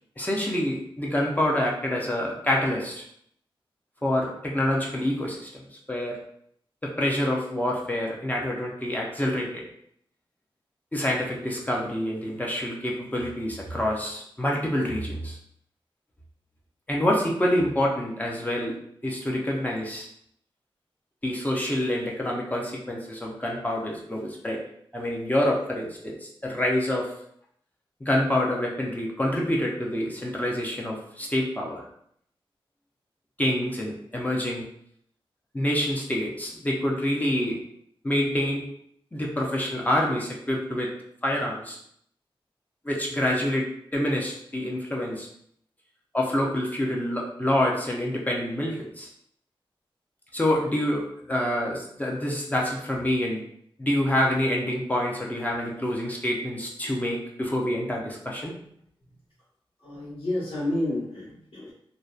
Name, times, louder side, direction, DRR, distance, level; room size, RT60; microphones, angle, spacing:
voice 1, 0.2-3.1 4.0-6.2 6.8-9.6 10.9-15.4 16.9-18.8 19.0-20.1 21.2-24.6 24.9-27.1 28.0-31.9 33.4-34.6 35.5-37.6 38.0-38.6 39.1-40.9 41.2-41.8 42.8-45.3 46.1-49.1 50.3-53.4 53.8-58.5, left 1 dB, 15° left, -2 dB, 0.5 m, -27 dB
voice 2, 59.8-61.7, left 1 dB, 70° left, -9 dB, 1.2 m, -30 dB
2.6 x 2.0 x 2.3 m, 0.68 s
wide cardioid pair, 100°, 10 cm